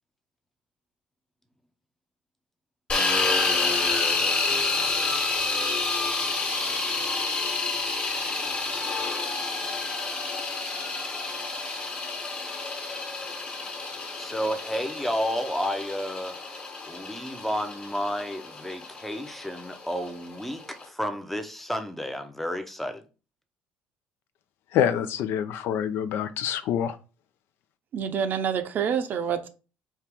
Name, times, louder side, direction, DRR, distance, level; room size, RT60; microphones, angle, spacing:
sound 1, 2.9-20.8, left 3 dB, 25° left, 1.3 m, -29 dB
voice 1, 14.2-16.4 16.8-23.1, equal, 5° left, 0.6 m, -31 dB
voice 2, 24.7-27.0, left 9 dB, 70° left, 0.5 m, -26 dB
voice 3, 27.9-29.5, right 7 dB, 50° right, 0.6 m, -27 dB
4.5 x 2.9 x 3.4 m
cardioid pair, 115°, 4 cm